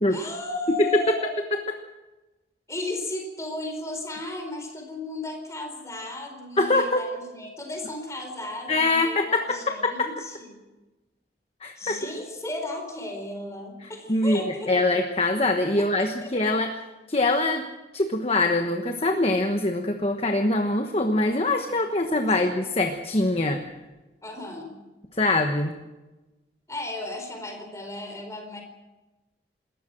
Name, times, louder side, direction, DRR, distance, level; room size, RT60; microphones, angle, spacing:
voice 1, 0.1-1.4 2.7-10.6 11.8-14.7 15.7-16.5 22.2-22.4 24.2-24.7 26.7-28.6, left 2 dB, 15° left, 3 dB, 4.4 m, -35 dB
voice 2, 6.6-7.0 8.7-10.1 11.6-12.0 13.8-14.4 14.7-16.7 17.1-17.6 17.9-23.6 25.1-25.7, left 2 dB, 30° left, 5 dB, 1.2 m, -23 dB
27.0 x 14.0 x 7.7 m, 1.1 s
head